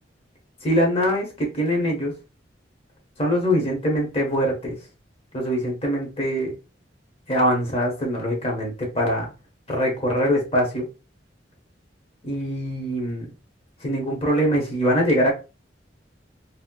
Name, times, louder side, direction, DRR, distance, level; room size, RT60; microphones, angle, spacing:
voice 1, 0.6-2.1 3.2-4.8 5.3-6.5 7.3-9.3 9.7-10.8 12.2-13.3 13.8-15.3, equal, 35° left, -1 dB, 1.1 m, -23 dB
4.2 x 2.1 x 2.2 m, 0.30 s
head